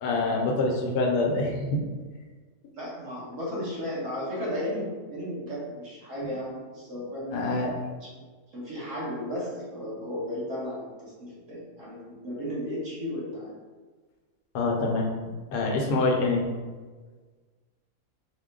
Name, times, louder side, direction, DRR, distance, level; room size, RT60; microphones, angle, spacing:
voice 1, 0.0-1.8 7.3-7.7 14.5-15.1 15.5-16.4, left 2 dB, 90° left, 0 dB, 1.3 m, -25 dB
voice 2, 2.7-7.6 8.0-8.2 8.5-13.5, left 1 dB, 50° right, -7 dB, 1.7 m, -34 dB
5.0 x 2.2 x 3.6 m, 1.4 s
omnidirectional pair, 1.7 m